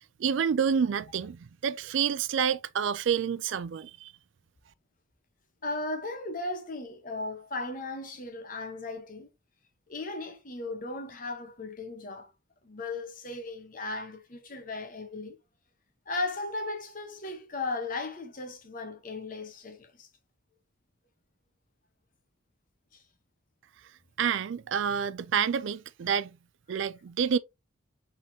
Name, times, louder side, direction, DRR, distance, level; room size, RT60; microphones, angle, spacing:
voice 1, 0.2-4.1 24.2-26.3 26.7-27.4, right 7 dB, 65° right, 0.4 m, -28 dB
voice 2, 5.6-9.3 9.9-12.3 12.6-15.4 16.1-20.1 22.9-23.0 26.7-26.8, left 2 dB, 45° left, 1.1 m, -36 dB
4.3 x 3.8 x 2.8 m
head